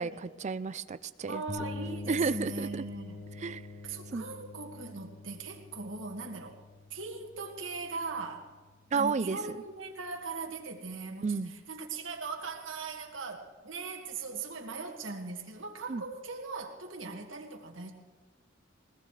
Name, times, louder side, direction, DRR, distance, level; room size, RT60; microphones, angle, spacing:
voice 1, 0.0-1.4 2.1-2.8 3.4-3.6 4.1-4.2 8.9-9.4 11.2-11.5 15.9-16.0, right 4 dB, 35° right, 14 dB, 0.4 m, -31 dB
voice 2, 1.3-3.2 3.8-6.6 6.9-8.5 8.9-17.9, right 4 dB, 85° right, 2 dB, 1.9 m, -39 dB
sound 1, 1.5-9.2, left 2 dB, 85° left, 4.6 m, -45 dB
20.0 x 20.0 x 3.3 m, 1.3 s
head